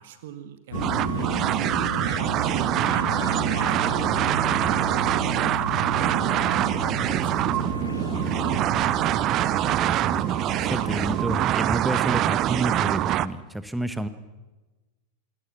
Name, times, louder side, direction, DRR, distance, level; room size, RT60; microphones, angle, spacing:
voice 1, 0.0-1.5 1.9-4.3 5.1-9.1, right 9 dB, 55° right, 11 dB, 1.6 m, -44 dB
sound 1, 0.7-11.5, left 6 dB, 70° left, 0.7 m, -34 dB
sound 2, 0.7-13.3, right 13 dB, 35° right, 0.6 m, -24 dB
Wind instrument woodwind instrument, 5.2-8.2 8.5-11.8, left 8 dB, 40° left, 3.6 m, -53 dB
voice 2, 9.8-14.1, right 1 dB, 5° right, 12 dB, 1.4 m, -30 dB
26.5 x 20.0 x 6.2 m, 1.2 s
figure-of-eight pair, 90°, 0 cm